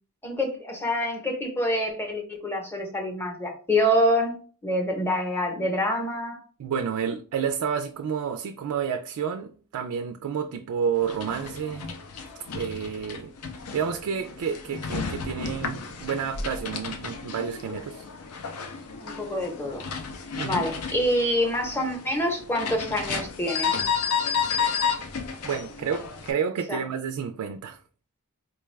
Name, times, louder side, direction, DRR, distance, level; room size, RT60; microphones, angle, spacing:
voice 1, 0.2-6.4 19.0-19.8 20.4-23.7 26.7-26.8, equal, 10° left, 0.7 m, -26 dB
voice 2, 6.6-11.9 12.5-13.3 13.7-18.0 20.3-20.7 25.4-27.8, right 7 dB, 80° right, 0.3 m, -30 dB
sound 1, 11.0-26.3, left 6 dB, 75° left, 0.5 m, -32 dB
4.3 x 2.2 x 3.2 m
head